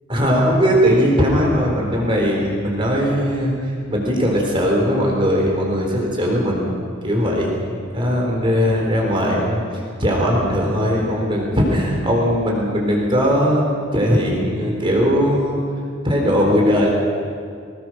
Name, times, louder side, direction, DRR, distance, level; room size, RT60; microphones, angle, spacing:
voice 1, 0.1-3.5 3.9-6.7 7.0-7.5 7.9-9.6 10.0-15.6 16.0-16.9, equal, 25° right, -2 dB, 4.1 m, -19 dB
21.5 x 19.0 x 6.4 m, 2.1 s
head